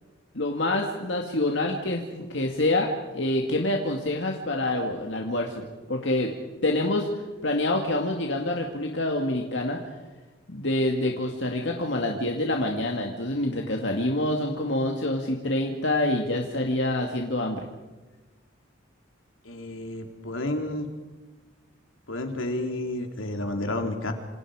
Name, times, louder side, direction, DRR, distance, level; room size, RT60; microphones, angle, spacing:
voice 1, 0.3-2.9 3.1-6.3 6.6-7.1 7.4-9.8 10.5-17.7, left 1 dB, 60° left, 1 dB, 2.2 m, -26 dB
voice 2, 19.4-20.9 22.1-24.1, left 1 dB, 85° left, 4 dB, 3.4 m, -31 dB
28.0 x 28.0 x 5.0 m, 1.2 s
head